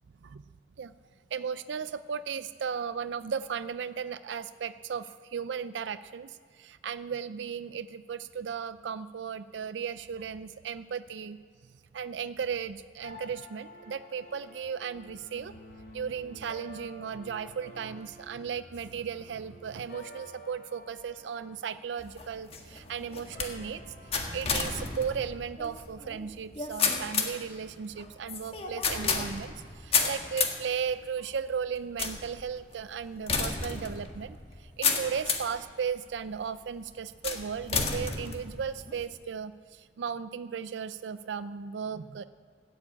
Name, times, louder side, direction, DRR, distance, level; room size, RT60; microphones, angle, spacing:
voice 1, 1.3-11.4 11.9-15.5 15.9-42.2, right 7 dB, 85° right, 13 dB, 0.4 m, -36 dB
sound 1, 13.0-25.3, equal, 60° left, 5.2 m, -51 dB
sound 2, 22.0-35.6 36.2-36.6 37.2-39.1, left 5 dB, 35° left, 1.5 m, -32 dB
13.0 x 10.0 x 8.5 m, 2.1 s
head